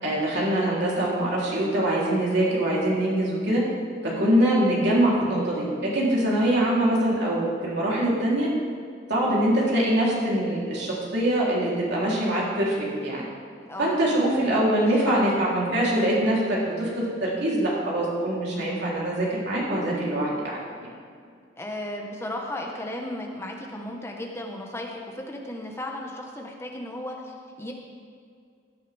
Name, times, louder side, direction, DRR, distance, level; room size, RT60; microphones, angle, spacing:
voice 1, 0.0-3.7 4.0-8.5 9.1-12.8 13.0-13.2 13.8-20.9, right 1 dB, 65° right, -5 dB, 3.5 m, -23 dB
voice 2, 4.0-4.4 13.6-14.0 14.7-15.4 18.5-18.8 21.2-27.7, left 1 dB, 15° left, 0 dB, 1.3 m, -36 dB
16.5 x 9.7 x 3.5 m, 2.2 s
head